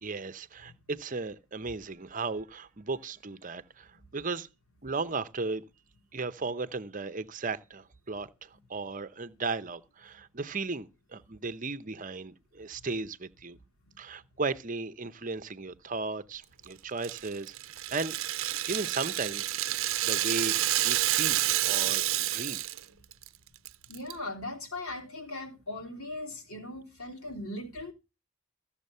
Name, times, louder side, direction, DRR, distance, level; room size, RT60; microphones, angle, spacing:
voice 1, 0.0-4.5 4.8-5.6 6.1-13.6 14.0-17.5 17.9-18.1 18.4-19.6 20.0-21.4 21.6-22.6, right 3 dB, 35° right, 0.7 m, -36 dB
Rattle (instrument), 17.0-22.8 23.1-23.3 23.6-24.1, right 14 dB, 65° right, 0.6 m, -29 dB
voice 2, 23.9-27.9, left 2 dB, 85° left, 3.3 m, -39 dB
15.0 x 7.2 x 5.5 m
head